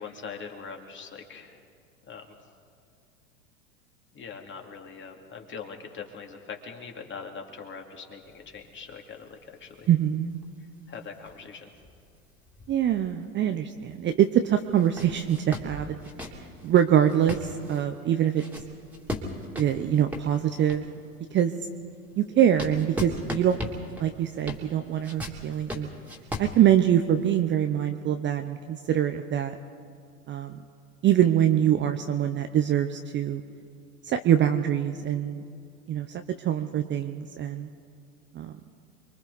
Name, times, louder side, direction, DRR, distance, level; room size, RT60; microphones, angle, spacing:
voice 1, 0.0-1.6 2.1-2.3 4.1-9.9 10.9-11.7, left 5 dB, 25° left, 3 dB, 2.6 m, -42 dB
sound 1, 8.2-13.6 13.9-14.0 14.6-21.0 21.5-27.3, left 1 dB, 5° right, 2.8 m, -39 dB
voice 2, 9.9-10.3 12.7-16.0 16.6-18.4 19.6-20.9 21.3-21.5 22.2-23.6 24.0-25.9 26.4-29.6 30.3-30.6 31.0-33.4 34.0-35.4 35.9-37.7 38.3-38.5, right 10 dB, 25° right, 8 dB, 0.8 m, -24 dB
29.0 x 23.0 x 4.1 m, 2.3 s
hypercardioid pair, 95°, 44 cm